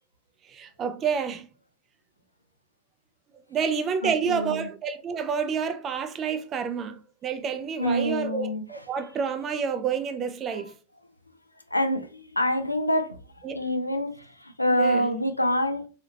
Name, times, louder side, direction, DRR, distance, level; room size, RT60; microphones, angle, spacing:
voice 1, 0.5-1.5 3.5-10.7 13.4-13.6 14.8-15.1, right 6 dB, 25° right, 0.4 m, -29 dB
voice 2, 4.0-4.7 7.8-8.6 10.5-10.7 11.7-15.9, equal, 85° left, 0.4 m, -26 dB
3.2 x 2.7 x 2.7 m
figure-of-eight pair, 90°, 0 cm